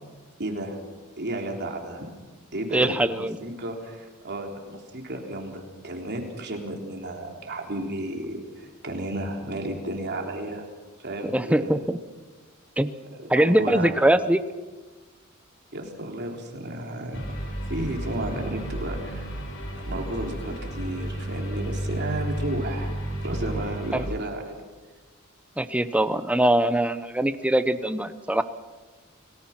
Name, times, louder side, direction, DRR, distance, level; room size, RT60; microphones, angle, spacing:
voice 1, 0.4-0.8 1.2-2.1 2.5-10.6 11.0-11.7 13.3-14.0 15.7-17.2 17.7-19.3 19.8-22.9 23.2-24.6, right 1 dB, 50° right, 2 dB, 3.7 m, -33 dB
voice 2, 2.7-3.4 11.3-12.0 12.8-12.9 13.3-14.4 23.9-24.0 25.6-28.4, right 1 dB, 5° right, 11 dB, 0.9 m, -22 dB
sound 1, 17.1-24.1, right 1 dB, 65° left, 4.5 m, -32 dB
30.0 x 19.0 x 6.0 m, 1.3 s
head